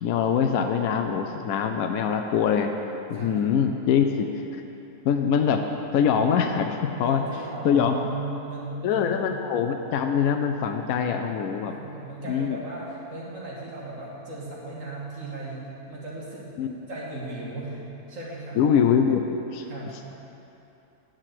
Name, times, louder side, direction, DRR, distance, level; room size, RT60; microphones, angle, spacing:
voice 1, 0.0-2.7 3.1-4.3 5.0-5.6 5.9-7.2 7.6-8.0 8.8-11.7 12.3-12.6 16.6-16.8 18.6-19.3 19.5-19.6, left 7 dB, 80° left, 5 dB, 1.0 m, -23 dB
voice 2, 3.1-3.5 6.8-9.1 11.7-15.6 15.9-16.5 16.9-17.8 18.1-18.7 19.7-20.1, right 2 dB, 65° right, -5 dB, 2.3 m, -36 dB
8.7 x 6.4 x 7.5 m, 2.9 s
omnidirectional pair, 1.5 m